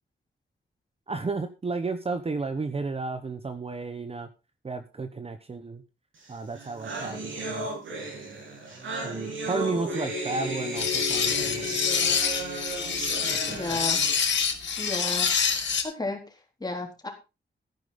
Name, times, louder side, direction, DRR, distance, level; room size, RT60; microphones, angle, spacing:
voice 1, 1.1-4.3 4.6-5.8 6.3-7.7 9.0-12.1 13.3-13.8, right 3 dB, 30° right, 9 dB, 1.0 m, -33 dB
sound 1, 6.3-6.4 6.5-14.1, right 1 dB, 90° right, 6.9 m, -34 dB
sound 2, 10.8-15.8, left 6 dB, 70° left, 2.5 m, -26 dB
voice 2, 13.5-14.0 14.8-15.3 15.8-16.2 16.6-17.1, left 2 dB, 20° left, 2 dB, 3.9 m, -32 dB
13.5 x 10.5 x 4.0 m, 0.29 s
wide cardioid pair, 145°, 20 cm